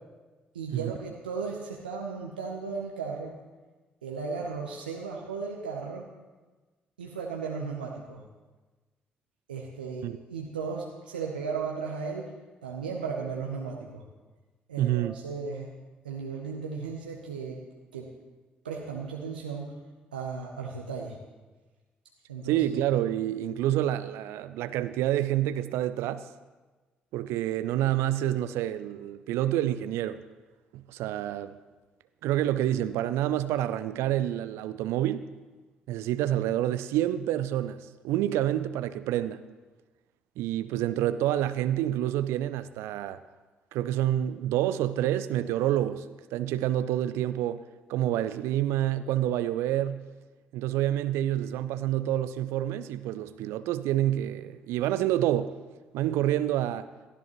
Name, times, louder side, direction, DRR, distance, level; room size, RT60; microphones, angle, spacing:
voice 1, 0.5-3.4 4.0-6.1 7.0-8.2 9.5-12.3 12.6-14.0 14.7-15.7 16.0-17.6 17.9-18.1 18.6-19.8 20.1-21.2 22.3-22.6, right 5 dB, 85° right, 0.8 m, -35 dB
voice 2, 14.8-15.2 22.4-26.3 27.1-30.2 30.7-31.6 32.2-35.3 35.9-39.4 40.4-43.2 43.7-46.1 46.3-47.6 47.9-50.0 50.5-55.5 55.9-56.9, right 12 dB, 65° right, 0.4 m, -28 dB
17.5 x 13.0 x 3.1 m
figure-of-eight pair, 45°, 5 cm